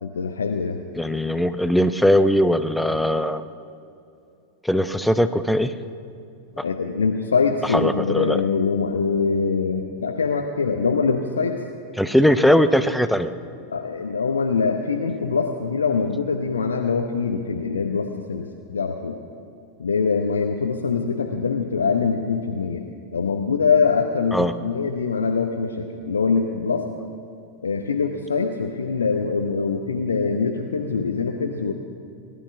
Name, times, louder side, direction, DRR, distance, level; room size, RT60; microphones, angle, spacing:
voice 1, 0.0-0.8 6.6-11.6 13.7-19.2 19.8-22.8 23.1-26.8 27.6-31.7, left 5 dB, 75° left, 3 dB, 0.8 m, -23 dB
voice 2, 1.0-3.4 4.6-5.7 6.6-6.7 7.7-8.4 12.0-13.3 24.3-24.5, equal, ahead, 11 dB, 0.7 m, -20 dB
19.0 x 11.0 x 6.0 m, 2.6 s
figure-of-eight pair, 90°, 0 cm